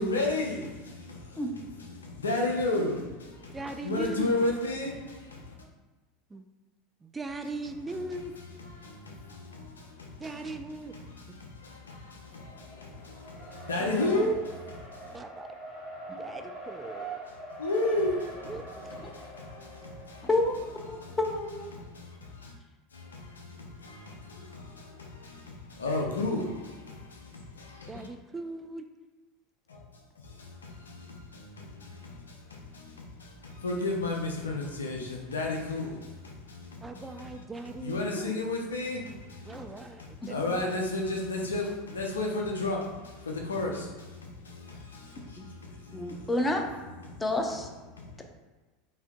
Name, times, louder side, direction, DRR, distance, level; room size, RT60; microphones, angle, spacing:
voice 1, 0.0-5.5 8.4-10.4 10.9-15.0 17.6-18.5 18.9-20.3 20.9-21.2 21.7-22.5 22.9-28.1 29.7-29.8 30.2-37.3 37.8-46.3 46.9-47.2 48.0-48.2, left 2 dB, 80° left, 0 dB, 0.6 m, -34 dB
voice 2, 3.5-4.5 6.3-6.4 7.0-8.3 10.2-11.0 13.8-14.3 15.1-15.5 16.2-17.2 18.5-18.6 18.9-19.1 27.9-28.9 36.8-38.5 39.5-40.7, right 2 dB, 15° right, 7 dB, 0.3 m, -39 dB
Race car auto racing, 12.2-21.3, right 2 dB, 45° left, 1.4 m, -44 dB
voice 3, 20.2-21.8 45.4-45.5 45.9-46.6 47.2-47.7, left 2 dB, 15° left, 2 dB, 0.6 m, -29 dB
5.5 x 2.8 x 2.2 m, 1.3 s
figure-of-eight pair, 80°, 0 cm